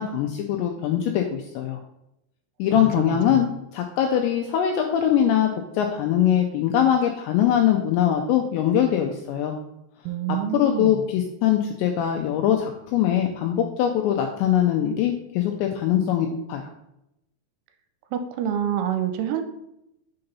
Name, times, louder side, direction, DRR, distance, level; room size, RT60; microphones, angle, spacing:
voice 1, 0.0-1.8 2.6-3.5 3.7-9.5 10.5-16.6, left 10 dB, 85° left, 3 dB, 2.5 m, -22 dB
voice 2, 2.7-3.4 10.1-11.0 18.1-19.4, right 9 dB, 80° right, 6 dB, 3.0 m, -27 dB
6.8 x 3.9 x 5.4 m, 0.85 s
omnidirectional pair, 5.6 m